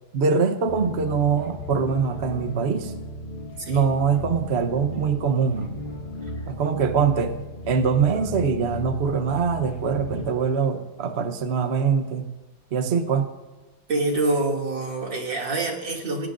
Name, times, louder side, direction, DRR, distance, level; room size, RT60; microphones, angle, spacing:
voice 1, 0.1-2.9 3.7-5.8 6.5-7.3 7.7-12.3 12.7-13.3, right 6 dB, 45° right, 7 dB, 0.9 m, -23 dB
sound 1, 0.7-10.4, left 3 dB, 25° left, 1.9 m, -36 dB
voice 2, 13.9-16.3, right 2 dB, 65° right, -1 dB, 3.3 m, -26 dB
29.0 x 17.5 x 2.6 m, 1.2 s
omnidirectional pair, 2.2 m